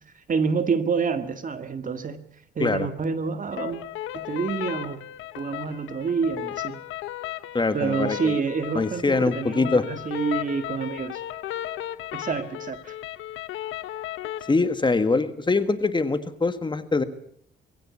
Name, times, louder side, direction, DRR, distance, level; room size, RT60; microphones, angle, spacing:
voice 1, 0.3-2.2 2.6-3.8 4.1-5.0 5.3-6.8 7.7-11.2 12.1-12.9, right 5 dB, 40° right, 10 dB, 1.9 m, -27 dB
sound 1, 3.5-14.5, left 13 dB, 90° left, 1.2 m, -35 dB
voice 2, 7.5-8.4 8.7-9.8 14.5-17.0, left 3 dB, 25° left, 11 dB, 1.6 m, -23 dB
21.5 x 16.5 x 8.4 m, 0.65 s
cardioid pair, 90°, 20 cm